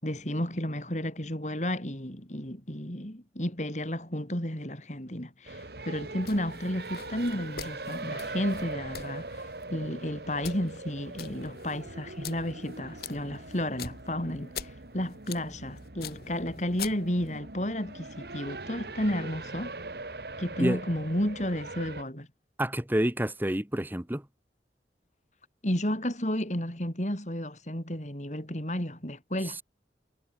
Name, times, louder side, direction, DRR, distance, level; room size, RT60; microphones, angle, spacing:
voice 1, 0.0-19.8 20.4-22.3 25.6-29.6, left 1 dB, 40° left, 5.6 m, -32 dB
sound 1, 5.5-22.0, right 2 dB, 65° right, 2.2 m, -41 dB
sound 2, 6.2-17.4, left 7 dB, 60° left, 5.2 m, -45 dB
voice 2, 22.6-24.2, equal, 10° right, 1.6 m, -28 dB
head